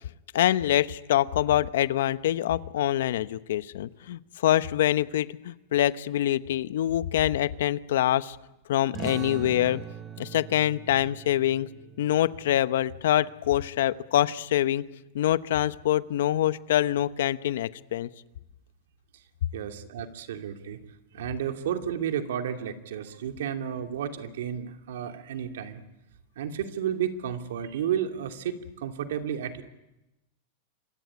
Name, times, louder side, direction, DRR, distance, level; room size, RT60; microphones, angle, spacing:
voice 1, 0.3-8.4 8.7-9.8 10.2-11.7 12.0-14.8 15.1-18.1, left 12 dB, 80° left, 14 dB, 1.0 m, -25 dB
sound 1, 8.9-14.1, right 8 dB, 25° right, 1.6 m, -42 dB
voice 2, 19.5-20.8 21.1-25.8 26.4-29.6, right 9 dB, 85° right, 6 dB, 2.7 m, -32 dB
26.5 x 23.0 x 9.7 m, 0.92 s
supercardioid pair, 150°, 0 cm